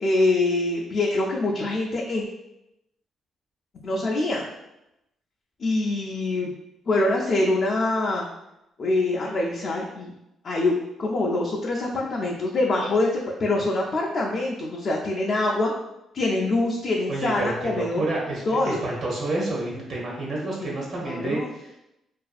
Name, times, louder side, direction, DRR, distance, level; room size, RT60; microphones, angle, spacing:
voice 1, 0.0-2.2 3.8-4.5 5.6-6.5 6.9-8.3 8.8-10.1 10.4-13.1 13.4-15.7 16.1-18.0 18.5-18.8 20.6-20.7 21.0-21.5, left 2 dB, 50° left, -2 dB, 0.4 m, -24 dB
voice 2, 17.1-21.8, right 2 dB, 60° right, -3 dB, 0.7 m, -29 dB
2.4 x 2.3 x 2.4 m, 0.87 s
cardioid pair, 90°, 0 cm